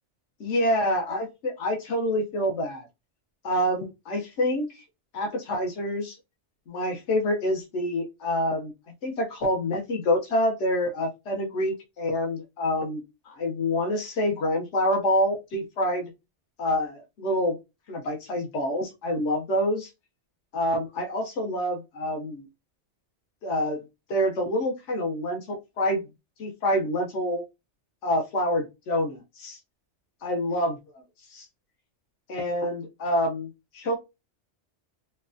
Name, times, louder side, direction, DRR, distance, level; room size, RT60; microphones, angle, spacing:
voice 1, 0.4-2.9 3.4-4.8 5.1-6.2 6.7-8.7 9.0-16.1 16.6-17.6 17.9-19.9 20.5-22.5 23.4-23.8 24.1-26.0 26.4-27.4 28.0-29.6 30.2-30.7 31.3-31.5 32.3-33.5 33.7-34.0, equal, 75° left, 2 dB, 1.2 m, -27 dB
4.5 x 2.3 x 2.5 m, 0.22 s
omnidirectional pair, 1.2 m